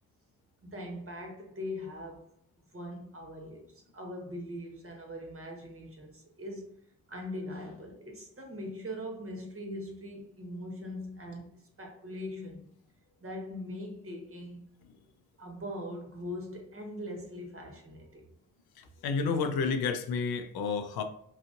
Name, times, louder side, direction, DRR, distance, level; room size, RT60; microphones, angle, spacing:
voice 1, 0.6-2.3 2.7-6.7 7.1-12.6 13.2-14.7 15.4-18.3, left 1 dB, 35° right, 1.2 m, -41 dB
voice 2, 18.8-21.0, left 5 dB, 80° left, 0.6 m, -30 dB
4.0 x 2.8 x 2.5 m
supercardioid pair, 50°, 37 cm